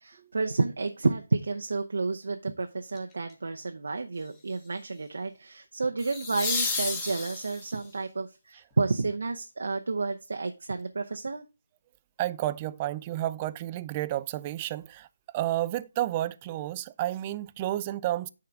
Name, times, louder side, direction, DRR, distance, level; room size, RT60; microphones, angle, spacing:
voice 1, 0.0-11.5, right 3 dB, 70° right, 0.7 m, -30 dB
sound 1, 3.0-3.3 6.0-7.9 10.8-10.9, left 4 dB, 15° left, 1.4 m, -32 dB
voice 2, 12.2-15.1 15.3-18.3, right 14 dB, 20° right, 0.3 m, -31 dB
9.5 x 3.8 x 4.5 m
figure-of-eight pair, 160°, 0 cm